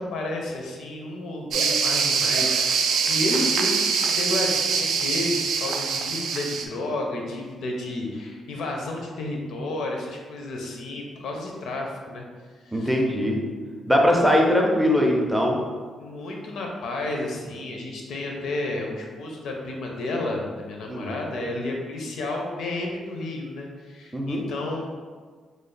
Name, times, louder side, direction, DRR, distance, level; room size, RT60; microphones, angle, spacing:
voice 1, 0.0-12.2 12.6-12.9 16.0-24.9, left 2 dB, 80° left, 1 dB, 0.6 m, -31 dB
sound 1, 1.5-6.6, right 5 dB, 80° right, 0.3 m, -24 dB
voice 2, 12.7-13.4 13.9-15.6 20.9-21.1 24.1-24.4, equal, ahead, -1 dB, 0.4 m, -21 dB
3.2 x 2.3 x 3.8 m, 1.5 s
cardioid pair, 165°, 0 cm